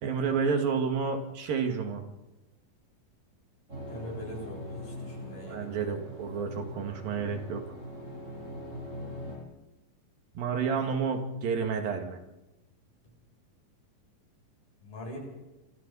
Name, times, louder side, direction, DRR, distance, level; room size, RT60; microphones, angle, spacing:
voice 1, 0.0-2.0 5.4-7.6 10.4-12.2, right 6 dB, 80° right, 4 dB, 3.9 m, -30 dB
sound 1, 3.7-9.4, left 1 dB, 20° right, 7.6 m, -41 dB
voice 2, 3.9-5.7 14.8-15.2, equal, 80° left, -1 dB, 9.6 m, -42 dB
27.5 x 25.5 x 4.2 m, 1.0 s
omnidirectional pair, 4.0 m